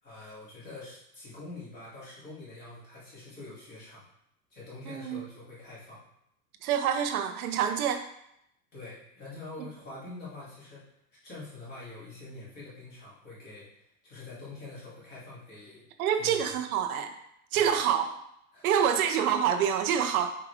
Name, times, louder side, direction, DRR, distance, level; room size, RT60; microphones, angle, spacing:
voice 1, 0.0-4.1 4.5-6.0 8.7-10.9 11.2-15.8 16.1-16.4 17.5-17.8 18.5-18.9, left 2 dB, 20° left, -7 dB, 2.5 m, -45 dB
voice 2, 4.9-5.2 6.6-8.0 16.0-17.1 17.5-18.0 18.6-20.4, right 8 dB, 60° right, 7 dB, 0.7 m, -26 dB
7.1 x 4.9 x 3.4 m, 0.78 s
supercardioid pair, 165°, 48 cm